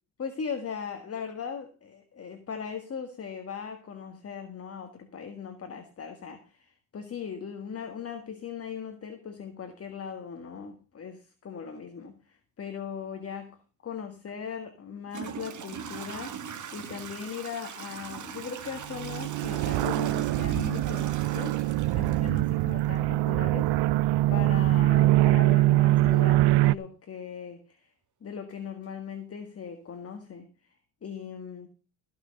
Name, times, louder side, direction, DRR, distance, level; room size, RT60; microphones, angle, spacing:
voice 1, 0.2-13.5 13.8-21.6 21.9-23.7 24.3-27.9 28.2-30.5 31.0-31.7, left 6 dB, 35° left, 1.7 m, -39 dB
Toilet flush / Trickle dribble, 14.3-14.4 15.1-22.9, right 7 dB, 40° right, 2.2 m, -41 dB
sound 1, 18.9-26.8, right 17 dB, 65° right, 0.5 m, -23 dB
14.5 x 6.3 x 6.4 m
cardioid pair, 115°, 43 cm